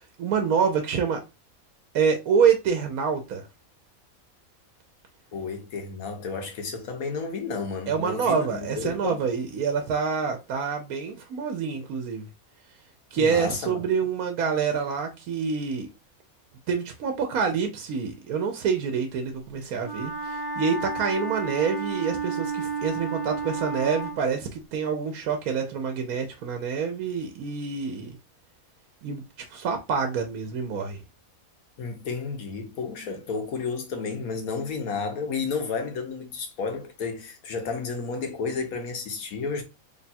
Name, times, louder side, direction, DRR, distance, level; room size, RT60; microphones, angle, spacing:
voice 1, 0.2-1.2 1.9-3.4 7.9-12.2 13.1-15.9 16.7-28.2 29.0-29.2 29.5-31.0, right 6 dB, 85° right, 1.2 m, -26 dB
voice 2, 5.3-9.2 13.2-13.8 31.8-39.6, left 4 dB, 80° left, 1.4 m, -32 dB
Wind instrument woodwind instrument, 19.8-24.2, right 4 dB, 25° left, 0.6 m, -31 dB
4.1 x 3.3 x 2.3 m
omnidirectional pair, 1.5 m